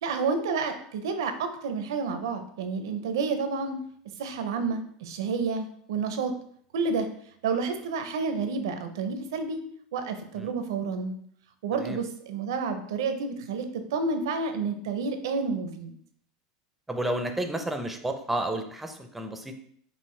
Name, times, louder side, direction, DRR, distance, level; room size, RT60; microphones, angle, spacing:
voice 1, 0.0-3.8 4.2-6.3 6.7-7.1 7.4-9.6 9.9-11.1 11.6-16.0, right 4 dB, 85° right, 8 dB, 0.6 m, -30 dB
voice 2, 16.9-19.6, right 1 dB, 5° right, 6 dB, 0.6 m, -31 dB
5.4 x 2.5 x 3.2 m, 0.63 s
supercardioid pair, 110°, 2 cm